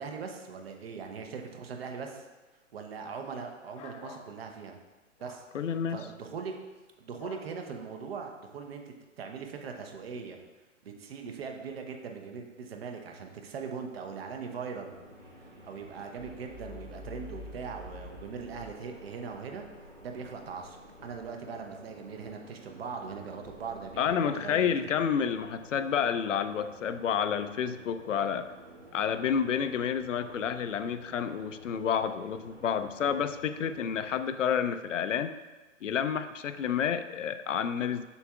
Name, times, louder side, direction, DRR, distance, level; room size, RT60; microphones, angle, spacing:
voice 1, 0.0-2.2 2.7-4.8 5.2-5.4 5.9-6.5 7.0-10.4 10.8-14.9 15.6-19.6 20.0-24.8, right 5 dB, 50° right, 3 dB, 0.9 m, -40 dB
sound 1, 3.7-4.3 5.2-5.4 7.2-7.5, left 4 dB, 25° left, 0.5 m, -47 dB
voice 2, 5.5-6.0 24.0-28.5 28.9-35.3 35.8-38.0, left 7 dB, 75° left, 11 dB, 0.5 m, -29 dB
sound 2, 14.8-34.3, equal, 80° right, 2.0 m, -52 dB
sound 3, 16.2-22.8 23.4-24.1, left 1 dB, 10° right, 0.8 m, -50 dB
6.9 x 6.2 x 2.4 m, 1.2 s
figure-of-eight pair, 130°, 38 cm